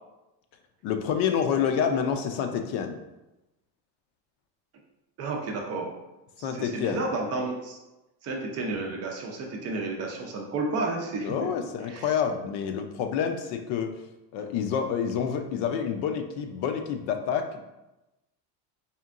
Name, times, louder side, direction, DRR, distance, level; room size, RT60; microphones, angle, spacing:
voice 1, 0.8-3.0 6.4-7.0 11.2-13.9 14.3-17.6, left 7 dB, 65° left, 6 dB, 0.6 m, -28 dB
voice 2, 5.2-6.0 6.4-7.8 8.2-11.5 11.9-12.1, right 3 dB, 35° right, 1 dB, 0.6 m, -31 dB
4.3 x 3.5 x 2.4 m, 0.98 s
cardioid pair, 160°, 43 cm